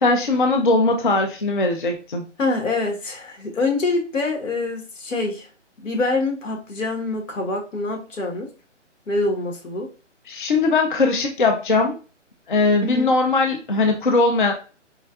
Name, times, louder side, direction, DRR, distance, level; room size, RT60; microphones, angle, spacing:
voice 1, 0.0-2.2 10.3-11.9 12.5-14.5, left 3 dB, 45° left, 4 dB, 0.4 m, -20 dB
voice 2, 2.4-5.5 5.8-8.5 9.1-9.9 12.8-13.1, left 3 dB, 90° left, 2 dB, 1.3 m, -25 dB
4.3 x 2.2 x 2.3 m, 0.35 s
hypercardioid pair, 170°, 37 cm